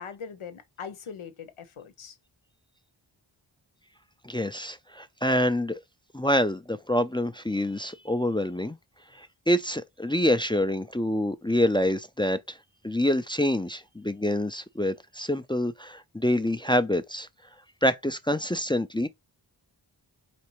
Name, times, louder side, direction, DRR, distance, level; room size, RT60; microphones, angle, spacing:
voice 1, 0.0-2.2, left 6 dB, 85° left, 0.8 m, -41 dB
voice 2, 4.2-5.8 6.1-8.8 9.2-12.6 12.8-17.3 17.8-19.1, left 1 dB, 10° left, 0.4 m, -26 dB
4.1 x 3.3 x 3.0 m
cardioid pair, 40°, 48 cm